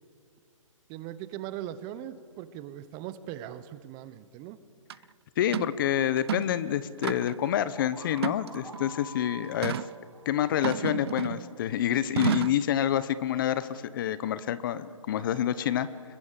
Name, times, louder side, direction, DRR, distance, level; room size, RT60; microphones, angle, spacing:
voice 1, 0.9-4.6, right 12 dB, 20° right, 14 dB, 0.8 m, -40 dB
sound 1, 4.9-5.0 5.5-5.8 6.2-6.6 7.0-7.5 8.2-8.8 9.6-9.9 10.6-11.5 12.2-12.7, right 10 dB, 50° right, 0.5 m, -31 dB
voice 2, 5.4-9.8 10.3-15.9, left 10 dB, 40° left, 16 dB, 1.0 m, -28 dB
sound 2, 7.8-11.5, right 1 dB, ahead, 6.6 m, -48 dB
27.0 x 21.5 x 7.5 m, 2.3 s
hypercardioid pair, 150°, 17 cm